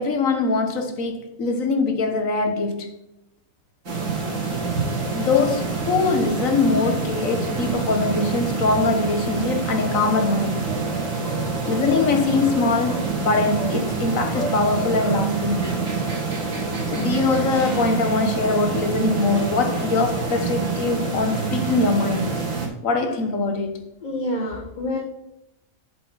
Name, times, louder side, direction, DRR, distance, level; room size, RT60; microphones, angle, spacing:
voice 1, 0.0-3.0 5.1-10.6 11.7-15.8 16.9-22.3 22.8-23.8, left 3 dB, 90° left, 1.7 m, -22 dB
sound 1, 3.8-22.7, right 4 dB, 90° right, 3.3 m, -26 dB
voice 2, 24.0-25.0, left 1 dB, 35° left, 1.4 m, -27 dB
7.7 x 7.6 x 4.1 m
omnidirectional pair, 1.4 m